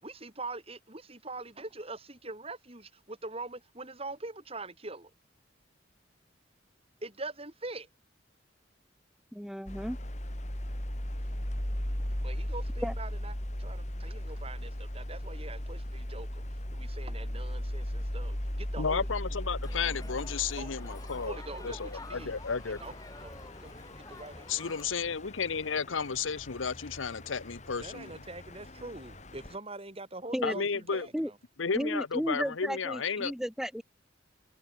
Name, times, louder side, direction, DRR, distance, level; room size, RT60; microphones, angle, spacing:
voice 1, 0.0-5.1 7.0-7.9 12.2-13.3 13.6-19.1 20.5-20.7 21.2-22.4 22.7-24.5 27.8-31.4, right 2 dB, 30° right, 5.4 m, -43 dB
voice 2, 9.3-10.0 12.8-12.9 30.3-30.6 31.1-31.3 31.7-33.8, equal, 5° right, 2.5 m, -33 dB
sound 1, 9.7-29.6, equal, 35° left, 3.3 m, -38 dB
voice 3, 18.8-21.4 21.6-22.8 24.5-28.1 30.4-31.1 31.6-33.3, left 5 dB, 90° left, 0.9 m, -33 dB
Crowd, 19.6-24.9, left 2 dB, 20° left, 3.3 m, -49 dB
head